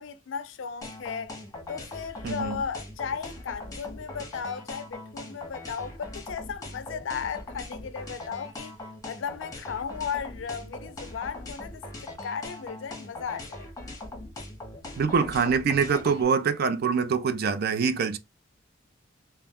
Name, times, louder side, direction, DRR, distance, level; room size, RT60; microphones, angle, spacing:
voice 1, 0.0-1.3 1.7-8.8 9.1-13.7, left 6 dB, 70° left, 0.4 m, -35 dB
sound 1, 0.8-16.2, left 2 dB, 20° left, 0.7 m, -40 dB
voice 2, 2.2-2.6 15.0-18.2, right 5 dB, 55° right, 0.4 m, -24 dB
2.3 x 2.1 x 3.4 m
head